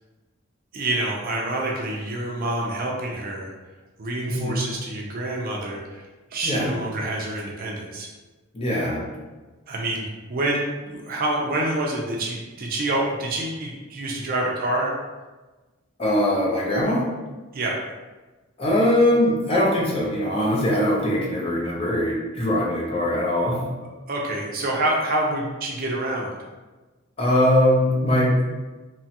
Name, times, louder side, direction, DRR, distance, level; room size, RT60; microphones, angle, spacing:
voice 1, 0.7-3.5 4.0-6.1 6.3-8.1 9.7-14.9 17.5-17.7 24.1-26.3, right 1 dB, 40° right, -2 dB, 0.4 m, -27 dB
voice 2, 4.3-4.6 6.4-6.7 8.5-9.0 16.0-17.0 18.6-23.6 27.2-28.4, left 1 dB, 25° left, -4 dB, 0.6 m, -21 dB
2.9 x 2.3 x 2.8 m, 1.2 s
head